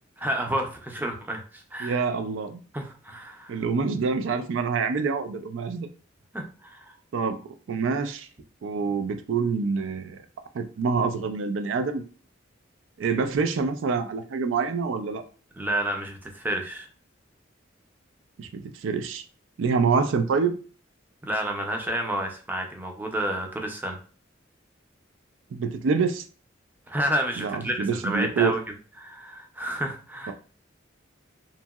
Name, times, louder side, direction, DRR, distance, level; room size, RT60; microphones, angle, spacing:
voice 1, 0.2-2.0 2.7-3.6 6.3-7.0 15.6-16.9 21.2-24.0 26.9-28.6 29.0-30.3, right 1 dB, 10° right, 3 dB, 0.4 m, -30 dB
voice 2, 1.8-2.6 3.5-5.9 7.1-7.4 7.7-8.3 8.6-10.2 10.5-12.0 13.0-15.2 18.4-19.2 19.6-20.6 25.5-26.3 27.4-28.5 30.3-30.4, right 5 dB, 75° right, 8 dB, 0.3 m, -26 dB
2.9 x 2.7 x 2.3 m, 0.38 s
head